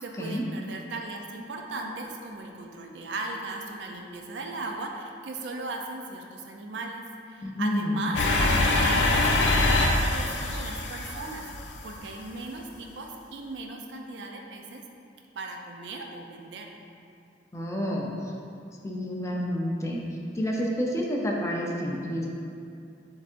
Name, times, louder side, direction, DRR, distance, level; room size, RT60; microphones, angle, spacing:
voice 1, 0.0-11.4 11.8-14.8 15.3-16.7, right 2 dB, 75° right, 2 dB, 0.4 m, -37 dB
voice 2, 7.4-8.0 17.5-18.1 18.8-20.0 20.4-22.3, equal, 15° left, -2 dB, 0.5 m, -29 dB
sound 1, 8.1-12.0, left 2 dB, 80° left, 0.4 m, -24 dB
6.7 x 2.7 x 2.5 m, 2.5 s
head